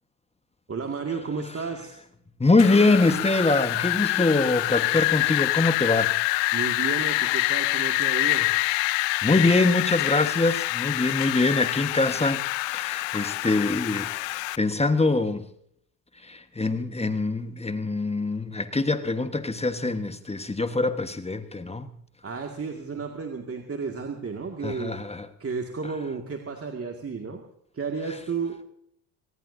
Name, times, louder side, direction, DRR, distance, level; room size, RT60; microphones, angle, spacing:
voice 1, 0.7-2.0 6.5-8.5 22.2-25.0 25.4-27.4 27.7-28.6, right 5 dB, 30° right, 3 dB, 2.1 m, -32 dB
voice 2, 2.4-6.1 9.2-12.4 12.7-15.4 16.2-21.9 24.6-25.3, left 3 dB, 15° left, 9 dB, 1.4 m, -24 dB
Wind, 2.6-14.6, left 23 dB, 70° left, 0.7 m, -26 dB
24.0 x 19.0 x 2.7 m, 0.71 s
hypercardioid pair, 65°, 47 cm